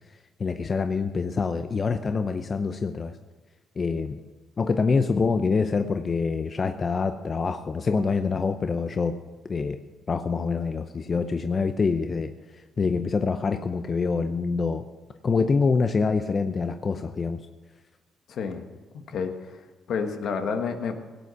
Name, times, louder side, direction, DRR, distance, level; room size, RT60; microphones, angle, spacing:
voice 1, 0.4-3.2 3.8-4.2 4.6-9.1 9.5-9.8 10.1-12.3 12.8-14.8 15.2-17.5, left 4 dB, 40° left, 8 dB, 0.6 m, -25 dB
voice 2, 18.3-18.6 18.9-21.0, left 5 dB, 70° left, 6 dB, 1.4 m, -30 dB
17.0 x 8.4 x 6.3 m, 1.3 s
cardioid pair, 90°, 0 cm